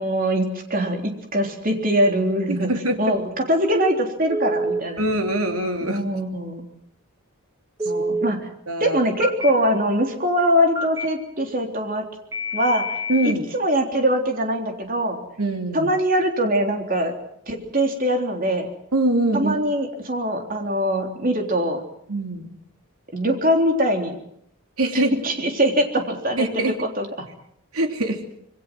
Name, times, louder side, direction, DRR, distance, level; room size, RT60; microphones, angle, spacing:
voice 1, 0.0-2.7 3.0-5.0 5.9-6.6 7.9-8.5 8.8-12.0 12.5-13.0 13.2-15.2 15.7-17.1 17.5-18.7 19.3-21.8 23.1-24.2 24.9-27.3, equal, 40° right, 3 dB, 3.6 m, -22 dB
voice 2, 2.5-3.2 5.0-6.0 7.9-8.1 8.7-9.0 13.1-13.4 15.4-15.9 18.9-19.6 22.1-22.5 24.8-25.1 26.4-26.7 27.7-28.2, right 1 dB, 80° right, 4 dB, 3.1 m, -23 dB
Telephone, 4.3-4.8 7.8-8.3 9.2-9.5 10.7-11.1 12.3-13.3, equal, 15° right, 1.6 m, -26 dB
26.5 x 22.0 x 6.2 m, 0.73 s
head